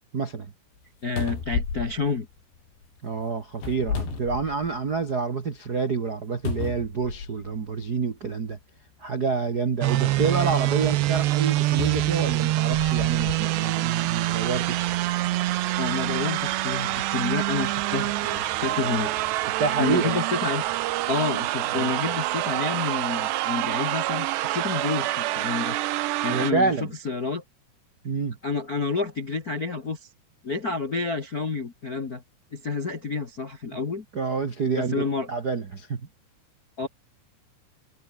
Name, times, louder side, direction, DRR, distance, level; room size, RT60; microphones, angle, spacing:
voice 1, 0.1-0.5 3.0-8.6 9.0-14.9 19.6-20.1 21.7-21.9 26.3-26.9 28.0-28.4 34.1-36.1, right 4 dB, 60° right, 1.0 m, -28 dB
sound 1, 0.8-0.9 1.2-2.9 3.5-5.0 5.4-5.5 6.4-7.6 8.5-8.6 11.8-13.4 14.1-14.3, left 5 dB, 85° left, 8.2 m, -33 dB
voice 2, 1.0-2.3 15.8-19.1 19.8-20.6 21.1-25.8 26.2-26.7 27.0-27.4 28.4-30.1 30.4-32.2 32.5-34.0 34.8-35.3 36.8-36.9, left 4 dB, 50° left, 1.0 m, -29 dB
sound 2, 9.8-26.5, right 16 dB, 90° right, 3.2 m, -26 dB
omnidirectional pair, 4.8 m